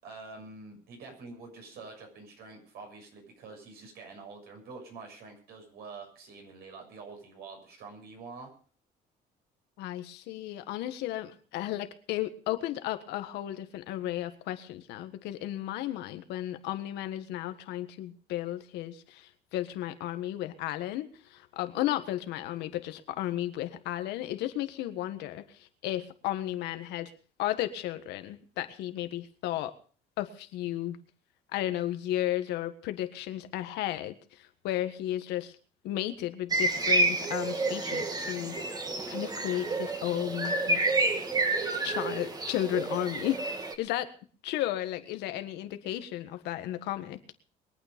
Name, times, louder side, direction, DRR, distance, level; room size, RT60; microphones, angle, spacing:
voice 1, 0.0-8.5, right 4 dB, 70° right, 3 dB, 6.9 m, -46 dB
voice 2, 9.8-25.4 25.8-27.1 27.4-29.7 30.2-31.0 31.5-35.5 35.8-38.5 39.1-40.8 41.8-43.4 43.8-44.1 44.4-47.3, left 13 dB, 90° left, 9 dB, 1.6 m, -34 dB
sound 1, 36.5-43.7, right 2 dB, 25° right, 2.0 m, -29 dB
22.5 x 9.1 x 5.2 m, 0.42 s
cardioid pair, 110°, 17 cm